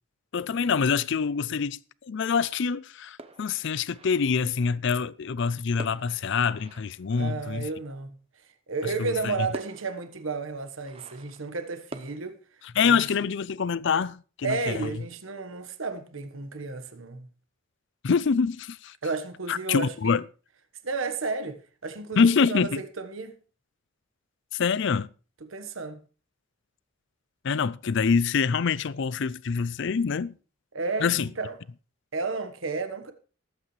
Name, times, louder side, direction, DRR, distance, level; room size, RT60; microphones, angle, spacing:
voice 1, 0.3-1.8 2.1-7.7 8.8-9.3 12.8-14.9 18.0-18.9 19.5-20.2 22.2-22.8 24.5-25.1 27.4-30.3 31.0-31.3, left 5 dB, 60° left, 0.5 m, -25 dB
sound 1, 3.2-4.7 5.8-7.7 8.9-9.0 9.5-12.2, right 2 dB, 30° right, 0.8 m, -46 dB
voice 2, 7.1-8.2 8.7-12.4 12.8-13.1 14.4-17.3 19.0-20.1 20.8-23.3 25.4-26.0 30.7-31.6 32.1-33.1, right 4 dB, 75° right, 1.3 m, -32 dB
19.5 x 8.3 x 3.2 m
head